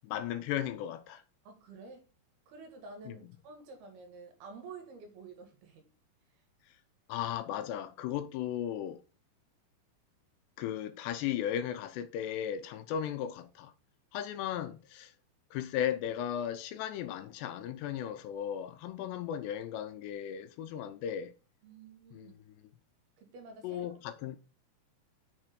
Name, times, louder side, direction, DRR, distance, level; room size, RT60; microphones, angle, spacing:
voice 1, 0.0-1.2 3.1-3.2 7.1-9.0 10.6-13.7 14.1-15.1 15.5-21.3 22.1-22.3 23.6-24.4, left 10 dB, 85° left, 2.7 m, -36 dB
voice 2, 1.5-2.0 2.5-5.9 21.6-22.4 23.2-24.0, right 4 dB, 65° right, 3.5 m, -50 dB
6.9 x 6.6 x 3.7 m
omnidirectional pair, 5.1 m